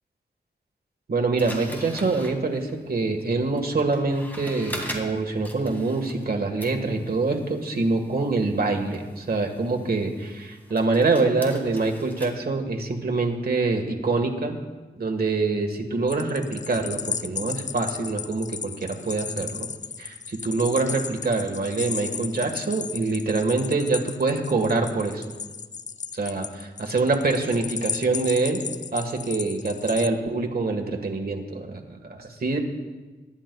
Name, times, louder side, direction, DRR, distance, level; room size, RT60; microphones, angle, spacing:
voice 1, 1.1-14.6 15.0-19.7 20.0-25.2 26.1-28.6 28.9-32.6, right 3 dB, 60° right, 2 dB, 1.4 m, -25 dB
sound 1, 1.4-6.3 6.6-12.3, equal, 10° left, 1.8 m, -41 dB
sound 2, 16.1-30.1, left 6 dB, 45° left, 0.4 m, -34 dB
23.5 x 10.5 x 2.3 m, 1.3 s
wide cardioid pair, 90°, 18 cm